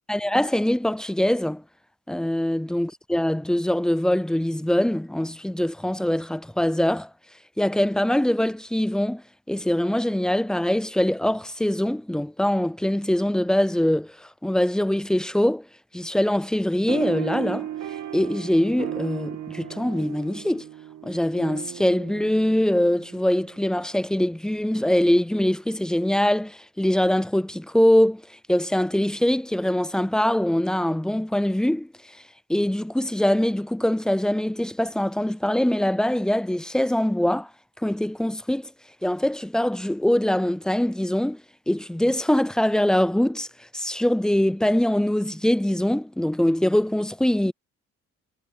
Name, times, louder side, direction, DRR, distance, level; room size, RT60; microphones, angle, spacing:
voice 1, 0.1-1.6 2.1-7.1 7.6-15.7 15.9-17.7 18.1-20.6 21.0-28.2 28.5-31.9 32.5-37.5 37.8-38.7 39.0-41.4 41.7-43.5 43.7-47.5, left 1 dB, ahead, 0.3 m, -23 dB
sound 1, 16.9-23.8, right 11 dB, 75° right, 2.5 m, -36 dB
cardioid pair, 90°, 30 cm